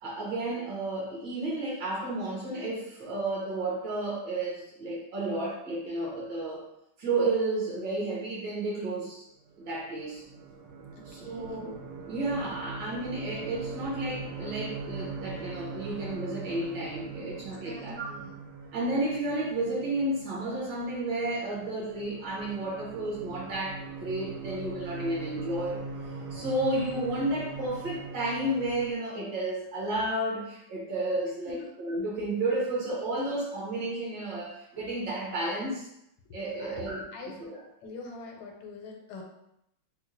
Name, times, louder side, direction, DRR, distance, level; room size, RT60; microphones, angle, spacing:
voice 1, 0.0-6.7 7.0-9.2 9.6-10.2 11.1-11.7 12.1-18.1 18.7-25.8 26.3-35.9 36.3-37.0 37.4-37.6, right 2 dB, 65° right, -6 dB, 1.7 m, -32 dB
sound 1, 9.5-28.9, right 4 dB, 80° right, 1.5 m, -41 dB
voice 2, 11.0-11.7 17.4-18.3 31.6-31.7 36.6-37.3 37.8-39.2, left 3 dB, 80° left, 1 dB, 1.5 m, -45 dB
4.4 x 2.3 x 2.5 m, 0.80 s
omnidirectional pair, 2.3 m